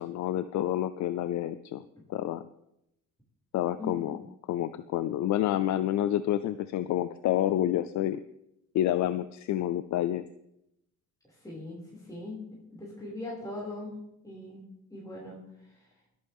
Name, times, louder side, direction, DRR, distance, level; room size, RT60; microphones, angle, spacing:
voice 1, 0.0-1.8 2.1-2.4 3.5-4.2 4.5-8.2 8.7-10.2, left 12 dB, 70° left, 13 dB, 0.5 m, -28 dB
voice 2, 3.8-4.1 11.4-11.8 12.1-12.4 12.7-14.6 14.9-15.4, left 2 dB, 10° left, -6 dB, 5.7 m, -40 dB
23.0 x 8.9 x 3.6 m, 0.82 s
cardioid pair, 90°, 30 cm